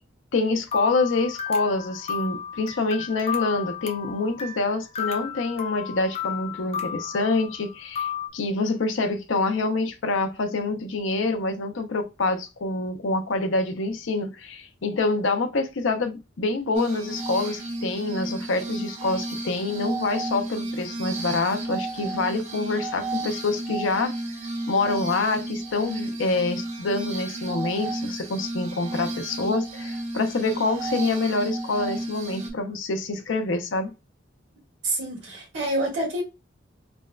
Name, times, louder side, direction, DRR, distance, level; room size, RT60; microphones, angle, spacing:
voice 1, 0.3-24.1 24.7-33.9, left 3 dB, 85° left, 0.5 m, -26 dB
sound 1, 0.7-8.3, left 8 dB, 30° left, 0.4 m, -33 dB
Glass, 16.7-32.5, right 2 dB, 35° right, 0.6 m, -32 dB
voice 2, 34.8-36.2, right 1 dB, 75° right, 1.5 m, -27 dB
3.4 x 2.1 x 2.3 m
head